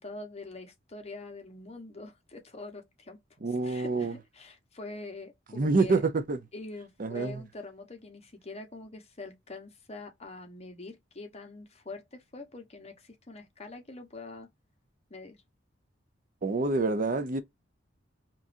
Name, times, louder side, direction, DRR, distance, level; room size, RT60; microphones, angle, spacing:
voice 1, 0.0-3.2 3.6-6.1 6.5-14.5 15.1-15.4, left 3 dB, 35° left, 1.0 m, -44 dB
voice 2, 3.4-4.1 5.5-6.4 7.0-7.4 16.4-17.4, right 3 dB, 45° right, 0.6 m, -27 dB
3.6 x 3.0 x 2.5 m
head